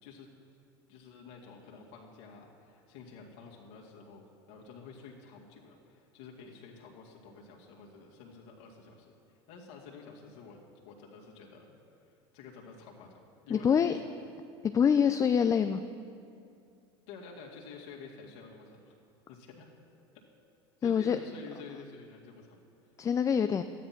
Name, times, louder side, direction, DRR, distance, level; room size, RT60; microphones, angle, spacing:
voice 1, 0.9-10.6 10.9-14.1 17.1-19.0 19.3-19.7 20.8-22.6, left 5 dB, 65° left, -1 dB, 2.2 m, -50 dB
voice 2, 13.5-14.0 14.6-15.8 20.8-21.2 23.0-23.6, left 7 dB, 20° left, 9 dB, 0.4 m, -25 dB
12.5 x 10.0 x 5.9 m, 2.5 s
hypercardioid pair, 100°, 14 cm